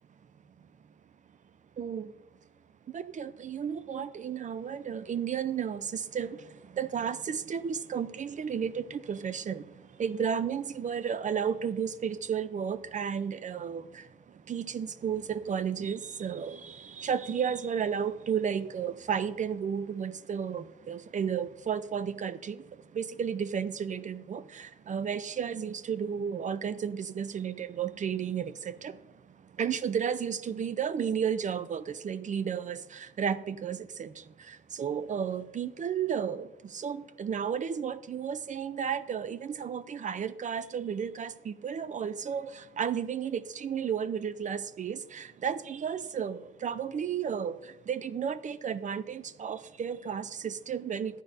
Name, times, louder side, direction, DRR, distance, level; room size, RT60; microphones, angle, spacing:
voice 1, 1.8-2.1 2.9-51.2, right 7 dB, 40° right, 0.5 m, -33 dB
12.5 x 9.5 x 2.6 m
cardioid pair, 90°, 20 cm